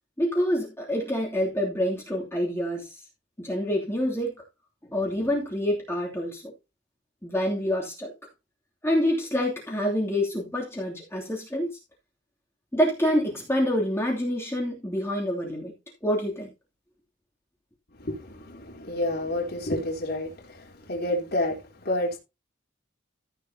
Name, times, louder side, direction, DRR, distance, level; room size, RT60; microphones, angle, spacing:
voice 1, 0.2-3.0 3.4-4.3 4.9-6.4 7.2-8.1 8.8-11.7 12.7-15.7 16.0-16.5, equal, 15° left, 2.8 m, -27 dB
voice 2, 18.0-21.6 21.8-22.2, left 1 dB, 50° left, 3.6 m, -29 dB
14.0 x 8.2 x 2.8 m
head